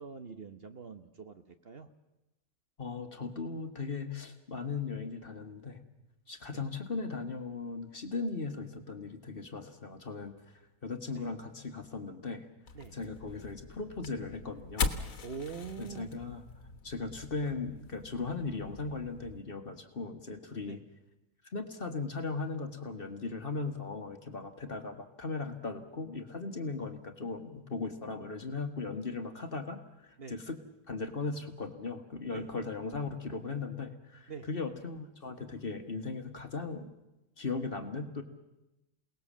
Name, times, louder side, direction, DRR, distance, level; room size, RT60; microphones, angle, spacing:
voice 1, 0.0-1.9 6.5-6.6 11.1-11.3 12.7-13.0 15.2-16.1 20.7-20.8 30.2-30.4 32.3-32.5 34.3-34.5, right 5 dB, 45° right, 9 dB, 1.2 m, -44 dB
voice 2, 2.8-5.8 6.3-10.4 10.8-12.5 12.9-15.0 15.8-16.4 16.8-20.8 21.5-30.6 30.9-36.9 37.4-38.2, left 4 dB, 40° left, 7 dB, 1.7 m, -38 dB
sound 1, 12.7-19.4, left 4 dB, 70° left, 1.8 m, -40 dB
28.0 x 19.0 x 7.4 m, 0.97 s
omnidirectional pair, 1.5 m